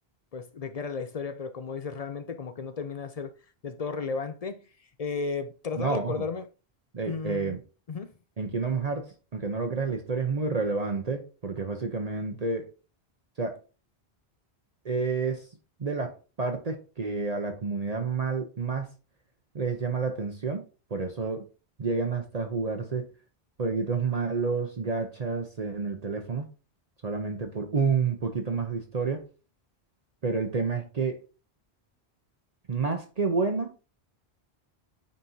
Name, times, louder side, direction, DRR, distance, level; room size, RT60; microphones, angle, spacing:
voice 1, 0.3-3.3 3.6-4.6 5.0-6.4 7.0-7.6 7.9-8.1, left 5 dB, 50° left, 0.5 m, -34 dB
voice 2, 5.8-6.2 6.9-7.6 8.4-12.7 13.4-13.6 14.8-15.5 15.8-18.9 19.5-20.6 20.9-21.5 21.8-23.1 23.6-26.5 27.0-29.3 30.2-31.2 32.7-33.7, right 4 dB, 40° right, 0.8 m, -29 dB
9.2 x 4.4 x 2.7 m
omnidirectional pair, 1.1 m